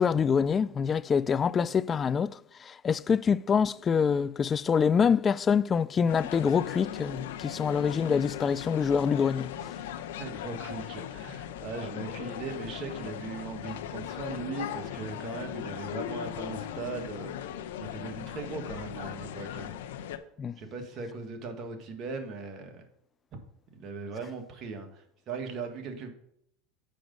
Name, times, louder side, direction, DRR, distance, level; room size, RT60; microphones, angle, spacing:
voice 1, 0.0-9.7 20.4-20.6, left 6 dB, 25° left, 0.3 m, -26 dB
sound 1, 6.1-20.2, left 10 dB, 90° left, 0.7 m, -38 dB
voice 2, 10.2-17.3 17.8-19.7 20.6-22.8 23.3-23.4 23.7-26.1, right 4 dB, 40° right, 1.7 m, -39 dB
7.7 x 5.2 x 5.3 m
supercardioid pair, 125°, 0 cm